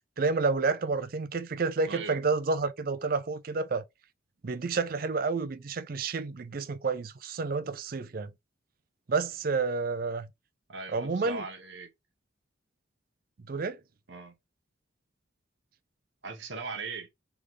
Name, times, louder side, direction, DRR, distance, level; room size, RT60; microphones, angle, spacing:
voice 1, 0.2-3.8 4.4-8.3 9.1-10.3 10.9-11.4 13.5-13.8, right 4 dB, 45° right, 0.4 m, -30 dB
voice 2, 1.9-2.2 10.7-11.9 14.1-14.4 16.2-17.1, right 4 dB, 60° right, 1.1 m, -39 dB
3.5 x 3.2 x 3.8 m
head